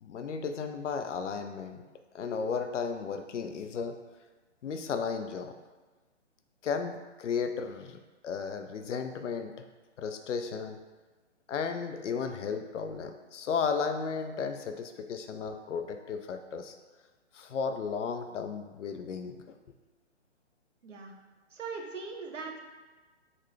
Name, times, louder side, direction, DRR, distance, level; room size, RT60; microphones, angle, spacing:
voice 1, 0.0-1.8 2.1-4.0 4.6-5.5 6.6-9.5 10.0-10.8 11.5-16.8 17.3-19.4, left 5 dB, 80° left, 7 dB, 0.5 m, -34 dB
voice 2, 20.8-21.1 21.5-22.6, right 4 dB, 90° right, 2 dB, 0.7 m, -40 dB
3.9 x 2.2 x 3.1 m, 1.3 s
hypercardioid pair, 140°, 36 cm